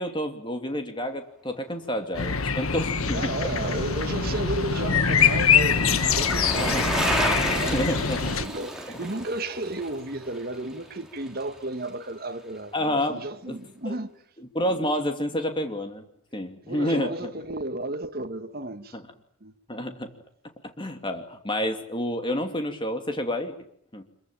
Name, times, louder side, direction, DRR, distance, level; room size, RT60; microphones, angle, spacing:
voice 1, 0.0-3.5 6.3-6.8 7.4-8.2 8.9-9.0 12.7-13.6 13.9-14.0 14.5-16.0 16.3-17.3 18.9-19.0 19.7-20.1 20.8-23.5 23.9-24.0, equal, 25° left, 2.7 m, -29 dB
sound 1, 2.1-8.5, left 6 dB, 85° left, 1.5 m, -24 dB
voice 2, 3.1-6.8 7.5-14.1 16.6-19.0 19.4-19.5, right 2 dB, 45° right, 1.5 m, -33 dB
Bicycle, 3.2-11.6 11.9-12.0, right 1 dB, 5° right, 3.6 m, -33 dB
25.5 x 23.0 x 9.0 m
head